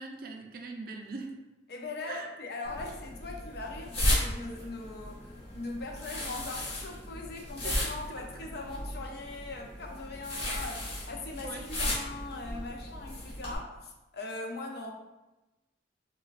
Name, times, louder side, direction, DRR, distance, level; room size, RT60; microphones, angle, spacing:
voice 1, 0.0-1.3 2.1-2.3 7.6-7.7 11.4-11.7, right 3 dB, 50° right, 3 dB, 0.4 m, -41 dB
voice 2, 1.7-14.9, left 2 dB, 55° left, 1 dB, 0.5 m, -40 dB
sound 1, 2.6-13.6, left 1 dB, 30° left, 0.9 m, -35 dB
4.2 x 2.2 x 2.4 m, 1.0 s
head